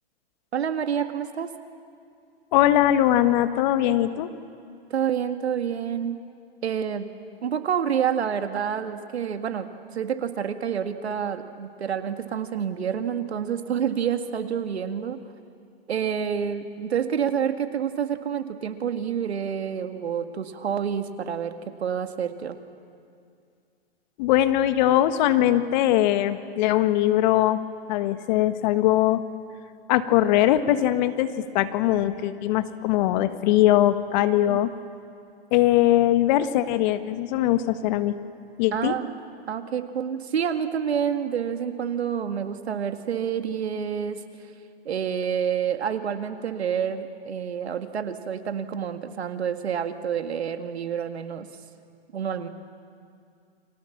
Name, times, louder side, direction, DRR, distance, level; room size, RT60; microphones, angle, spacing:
voice 1, 0.5-1.5 4.9-6.2 6.6-7.1 7.4-15.2 15.9-22.6 34.5-34.6 38.7-39.1 39.5-44.2 44.9-51.5 52.1-52.5, right 8 dB, 80° right, 8 dB, 2.1 m, -28 dB
voice 2, 2.5-4.3 24.2-27.6 27.9-29.2 29.9-34.7 35.5-38.2 38.6-39.0, left 13 dB, 45° left, 10 dB, 1.6 m, -21 dB
30.0 x 23.5 x 7.3 m, 2.4 s
hypercardioid pair, 125°, 32 cm